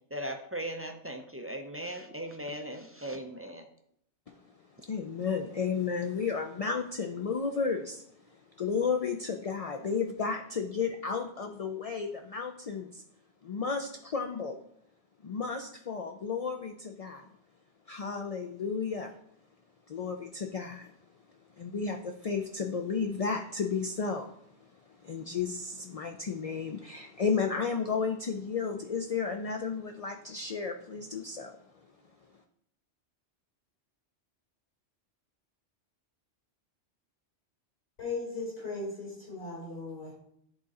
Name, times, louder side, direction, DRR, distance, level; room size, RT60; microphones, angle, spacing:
voice 1, 0.1-3.7, right 1 dB, 20° right, 4 dB, 0.3 m, -38 dB
voice 2, 4.8-13.0 13.4-14.6 15.2-17.3 17.9-19.1 19.9-20.9 21.6-24.3 24.6-31.6, left 5 dB, 55° left, 4 dB, 0.4 m, -33 dB
voice 3, 38.0-40.1, left 3 dB, 70° left, -6 dB, 3.8 m, -37 dB
10.5 x 3.7 x 4.1 m, 0.71 s
omnidirectional pair, 1.2 m